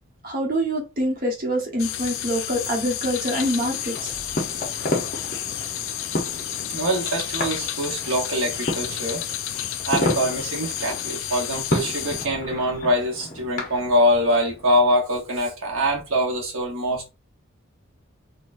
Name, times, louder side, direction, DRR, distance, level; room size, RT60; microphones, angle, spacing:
voice 1, 0.2-4.1, equal, 40° right, 1.0 m, -25 dB
sound 1, 1.8-12.3, left 11 dB, 70° left, 0.4 m, -31 dB
sound 2, 3.4-14.9, left 1 dB, 40° left, 0.8 m, -32 dB
voice 2, 6.7-9.2 9.9-17.1, equal, 75° right, 1.0 m, -24 dB
4.0 x 2.3 x 2.5 m
head